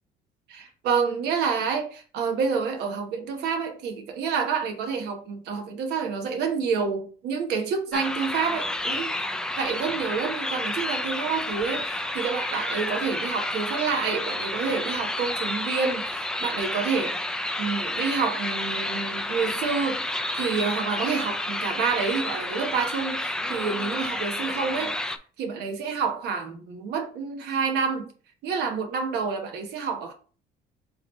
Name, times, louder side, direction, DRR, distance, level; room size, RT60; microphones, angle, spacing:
voice 1, 0.5-9.1 9.6-17.2 17.6-25.0 25.4-28.1 28.4-30.1, right 5 dB, 80° right, 1.0 m, -28 dB
sound 1, 7.9-25.2, left 1 dB, 5° left, 0.3 m, -30 dB
4.0 x 3.0 x 4.0 m
cardioid pair, 130°, 17 cm